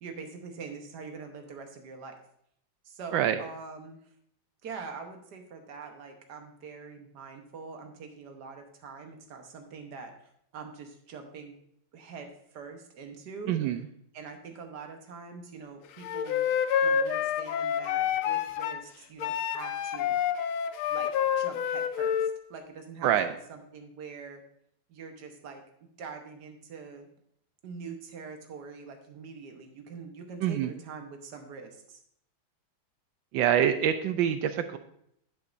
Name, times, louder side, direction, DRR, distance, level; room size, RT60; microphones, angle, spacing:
voice 1, 0.0-2.2 2.8-4.0 4.6-10.1 10.5-11.5 11.9-13.8 14.1-16.4 16.8-20.2 20.9-23.1 23.5-24.4 24.9-27.1 27.6-32.0, right 5 dB, 60° right, 4 dB, 1.6 m, -44 dB
voice 2, 13.5-13.8 23.0-23.3 30.4-30.7 33.3-34.8, right 10 dB, 75° right, 10 dB, 1.2 m, -25 dB
Wind instrument woodwind instrument, 16.0-18.8 19.2-22.3, left 8 dB, 90° left, 1.4 m, -28 dB
9.3 x 8.2 x 2.6 m, 0.71 s
omnidirectional pair, 2.2 m